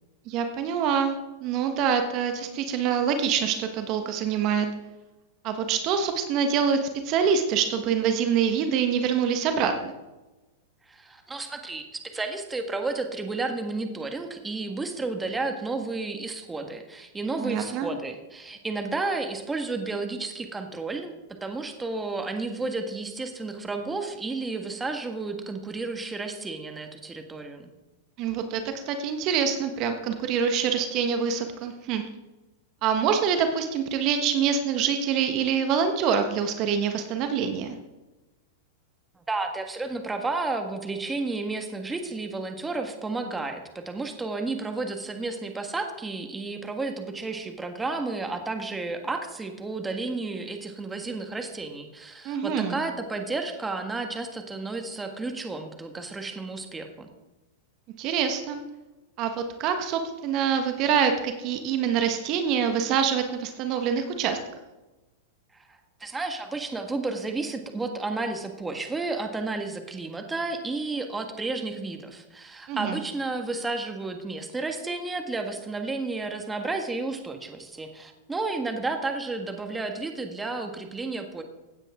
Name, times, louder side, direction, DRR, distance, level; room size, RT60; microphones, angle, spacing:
voice 1, 0.3-4.7 5.4-9.9 17.4-17.9 28.2-32.0 32.8-37.7 52.2-52.8 58.0-58.6 59.2-64.4 72.7-73.0, right 7 dB, 45° right, 6 dB, 1.3 m, -25 dB
voice 2, 10.9-21.1 21.4-27.7 39.2-57.1 65.5-81.4, right 3 dB, 10° right, 5 dB, 1.7 m, -32 dB
16.0 x 9.0 x 3.7 m, 1.1 s
hypercardioid pair, 110°, 0 cm